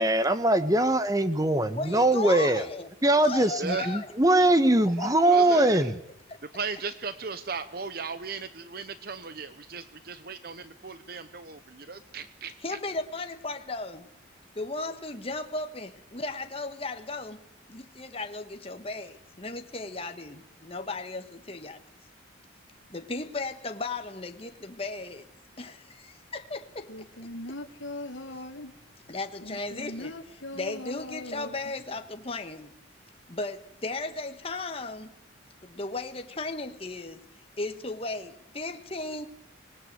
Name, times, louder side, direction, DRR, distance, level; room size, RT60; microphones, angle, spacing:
voice 1, 0.0-2.7 3.0-6.0, right 1 dB, 15° right, 1.3 m, -22 dB
voice 2, 1.7-2.9 3.2-4.1 5.0-5.6 6.3-6.4 12.6-14.1 14.5-17.4 17.7-21.8 22.9-25.3 25.6-26.9 29.1-32.7 33.3-35.1 35.6-37.2 37.6-39.3, left 3 dB, 30° left, 1.4 m, -36 dB
voice 3, 3.6-4.0 5.2-5.9 6.5-12.8, right 5 dB, 50° right, 0.9 m, -37 dB
sound 1, 26.9-28.8 29.4-31.8 32.1-32.2, left 1 dB, 75° left, 2.2 m, -39 dB
25.5 x 19.5 x 8.0 m
head